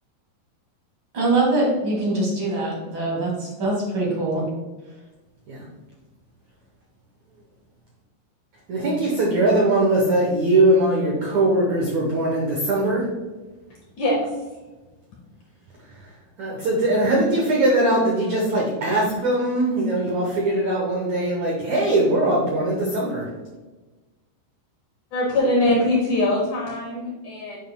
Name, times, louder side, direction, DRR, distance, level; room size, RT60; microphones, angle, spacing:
voice 1, 1.1-3.3 3.6-4.4, right 2 dB, 40° right, -4 dB, 2.1 m, -23 dB
voice 2, 8.7-13.1 16.4-23.3, right 1 dB, 90° right, -2 dB, 1.6 m, -21 dB
voice 3, 14.0-14.3 25.1-27.6, left 1 dB, 80° left, -2 dB, 1.7 m, -22 dB
9.1 x 5.6 x 2.3 m, 1.2 s
omnidirectional pair, 4.8 m